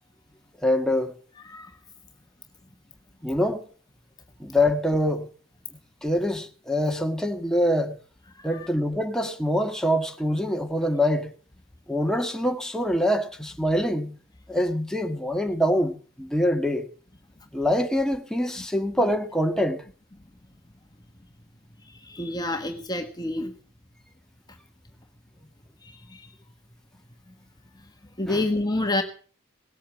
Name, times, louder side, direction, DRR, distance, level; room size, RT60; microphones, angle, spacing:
voice 1, 0.6-1.1 3.2-3.6 4.4-5.3 6.0-8.0 8.4-11.3 11.9-14.2 14.5-16.9 17.5-19.8 28.3-28.4, left 1 dB, 5° left, 1.6 m, -25 dB
voice 2, 21.9-23.5 25.8-26.3 28.2-29.0, left 2 dB, 20° left, 1.4 m, -28 dB
19.0 x 8.6 x 7.3 m
head